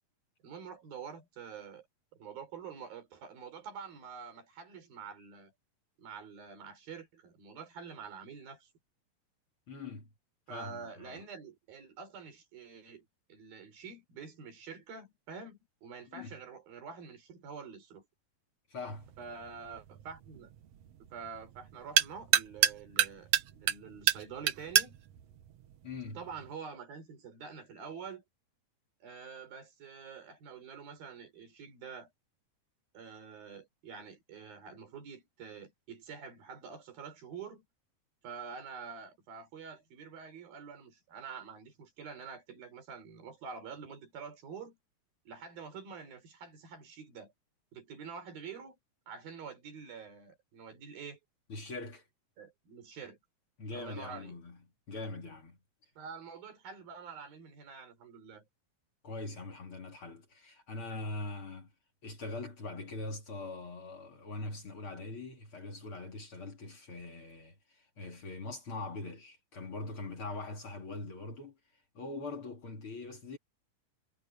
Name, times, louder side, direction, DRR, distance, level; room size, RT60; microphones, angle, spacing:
voice 1, 0.4-1.9 2.1-5.5 6.0-8.7 10.5-18.1 19.2-20.5 21.0-25.0 26.1-28.2 29.0-32.1 32.9-37.6 38.2-44.8 45.3-47.3 47.7-48.8 49.1-51.2 52.4-53.2 53.8-54.4 56.0-58.5, right 6 dB, 85° right, 6.0 m, -47 dB
voice 2, 9.7-10.1 10.5-11.2 16.1-16.4 18.7-19.1 25.8-26.2 51.5-52.0 53.6-54.6 54.9-55.6 59.0-61.7 62.0-71.6 71.9-73.4, left 2 dB, 40° left, 3.1 m, -42 dB
sound 1, 18.9-26.5, right 11 dB, 65° right, 1.6 m, -32 dB
omnidirectional pair, 4.1 m